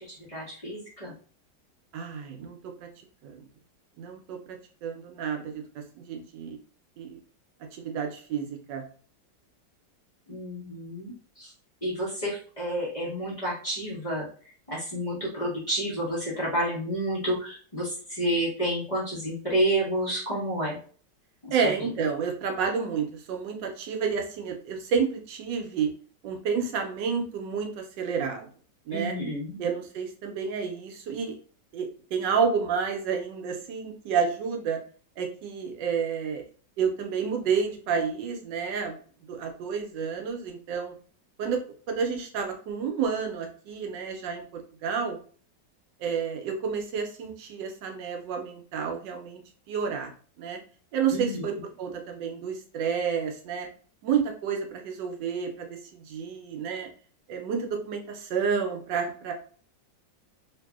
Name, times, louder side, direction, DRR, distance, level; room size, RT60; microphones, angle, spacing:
voice 1, 0.1-1.1 10.3-11.5 11.8-14.3 14.7-20.8 21.4-21.6 28.9-29.6 51.1-51.4, right 1 dB, 25° left, -8 dB, 1.0 m, -30 dB
voice 2, 1.9-2.6 3.2-3.5 4.0-4.4 4.8-5.6 6.0-6.6 7.0-7.2 7.7-8.8 21.5-25.9 26.2-28.5 28.9-29.1 29.6-31.3 31.7-34.8 35.2-36.4 36.8-39.0 39.3-40.9 41.4-41.6 41.9-45.2 46.0-49.4 49.7-50.1 50.4-50.6 50.9-51.5 51.8-53.7 54.0-56.9 57.3-59.3, right 6 dB, 85° right, 3 dB, 1.3 m, -30 dB
3.1 x 2.6 x 2.3 m, 0.42 s
omnidirectional pair, 1.9 m